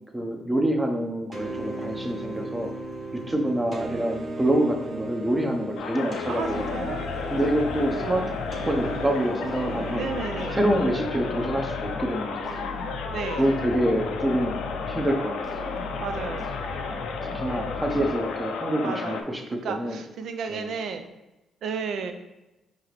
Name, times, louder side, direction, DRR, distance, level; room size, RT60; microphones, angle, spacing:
voice 1, 0.1-2.7 3.1-6.9 7.3-8.3 8.7-10.0 10.5-12.7 13.3-14.6 14.8-15.6 17.2-20.0 20.5-20.7, right 1 dB, 15° right, 3 dB, 0.8 m, -26 dB
sound 1, 1.3-10.9, right 2 dB, 50° right, 0.9 m, -36 dB
sound 2, 5.8-19.2, left 5 dB, 80° left, 0.4 m, -33 dB
voice 2, 6.3-7.0 7.9-8.3 9.9-10.6 13.1-13.4 16.0-16.5 18.8-19.2 19.5-21.0 21.6-22.1, right 5 dB, 70° right, 7 dB, 0.5 m, -33 dB
sound 3, 6.4-18.6, left 2 dB, 5° left, 1.2 m, -37 dB
4.7 x 2.9 x 3.1 m, 0.99 s
supercardioid pair, 55°, 0 cm